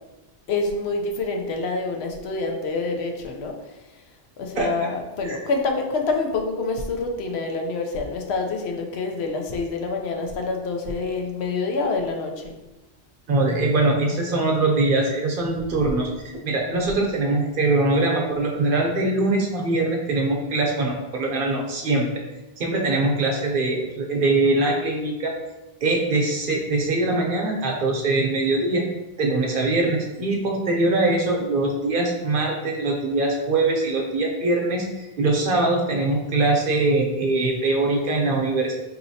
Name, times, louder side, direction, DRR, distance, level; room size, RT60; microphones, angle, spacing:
voice 1, 0.5-3.8 4.4-12.5, left 3 dB, 85° left, 2 dB, 0.9 m, -27 dB
voice 2, 4.6-4.9 5.2-5.4 13.3-22.1 22.6-25.3 25.8-28.9 29.2-38.7, right 2 dB, 60° right, 0 dB, 0.8 m, -22 dB
4.2 x 2.8 x 2.7 m, 1.0 s
omnidirectional pair, 1.0 m